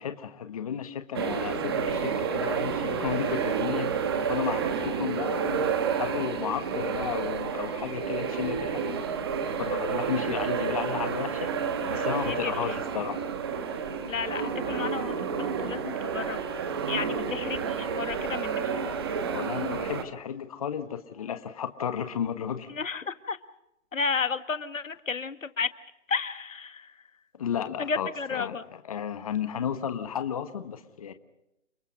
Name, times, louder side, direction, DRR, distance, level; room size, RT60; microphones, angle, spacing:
voice 1, 0.0-5.6 6.0-11.5 11.9-13.3 19.3-22.7 27.4-31.1, left 8 dB, 30° left, 8 dB, 1.3 m, -33 dB
sound 1, 1.1-20.0, right 6 dB, 20° right, 1.2 m, -30 dB
voice 2, 11.8-12.5 14.0-16.6 16.9-18.6 22.7-23.4 23.9-25.7 26.1-26.9 27.8-28.6, left 5 dB, 85° left, 11 dB, 1.7 m, -32 dB
30.0 x 20.5 x 5.2 m, 0.85 s
hypercardioid pair, 165°, 39 cm